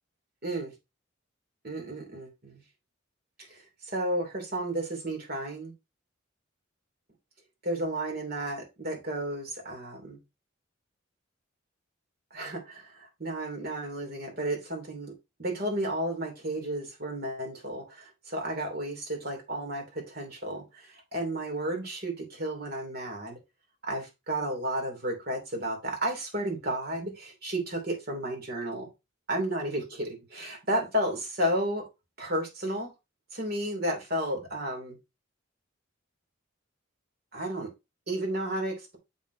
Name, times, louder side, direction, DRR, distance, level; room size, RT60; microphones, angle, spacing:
voice 1, 0.4-0.7 1.6-2.6 3.5-5.7 7.6-10.2 12.3-15.1 15.4-23.4 23.8-28.9 29.3-31.9 32.2-32.9 33.3-35.0 37.3-37.7 38.1-39.0, right 1 dB, 50° right, 2 dB, 2.6 m, -32 dB
7.1 x 6.1 x 2.7 m, 0.24 s
head